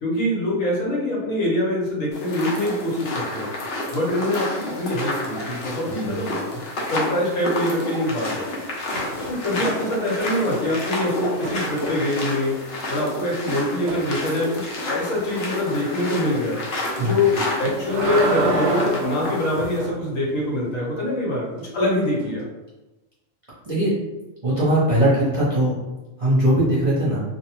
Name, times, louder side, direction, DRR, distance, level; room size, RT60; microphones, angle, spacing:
voice 1, 0.0-3.5 3.9-6.4 6.9-8.5 9.3-12.6 12.9-16.6 17.0-22.4, left 1 dB, 80° left, -4 dB, 1.2 m, -24 dB
sound 1, 2.1-19.8, left 1 dB, 60° left, 0.8 m, -30 dB
sound 2, 8.9-9.6 9.9-12.3 13.9-14.1 17.4-20.0 22.2-22.3, right 1 dB, 70° right, 0.9 m, -28 dB
voice 2, 24.4-25.7 26.2-27.2, right 1 dB, 35° right, -10 dB, 0.7 m, -20 dB
2.6 x 2.1 x 2.9 m, 1.1 s
omnidirectional pair, 1.4 m